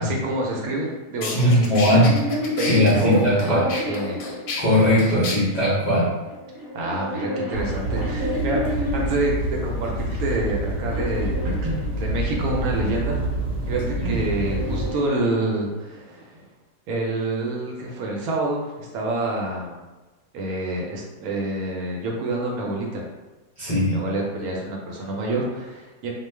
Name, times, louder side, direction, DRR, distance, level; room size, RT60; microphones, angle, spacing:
voice 1, 0.0-2.0 2.6-3.2 3.5-4.2 6.7-13.2 13.7-16.5 16.9-19.8 20.3-23.0 23.7-26.1, right 2 dB, 75° right, -1 dB, 1.0 m, -27 dB
sound 1, 0.8-0.9 1.2-5.4, left 3 dB, 70° left, 0.9 m, -31 dB
voice 2, 1.3-2.1 2.7-3.6 4.6-6.1 23.6-24.0, left 1 dB, 55° left, -10 dB, 0.4 m, -19 dB
sound 2, 1.6-5.0 5.9-9.3 10.0-12.4 13.5-15.9, left 1 dB, 40° right, 0.9 m, -32 dB
sound 3, 7.5-14.9, right 1 dB, 90° right, 1.2 m, -27 dB
2.4 x 2.3 x 3.2 m, 1.1 s
omnidirectional pair, 1.7 m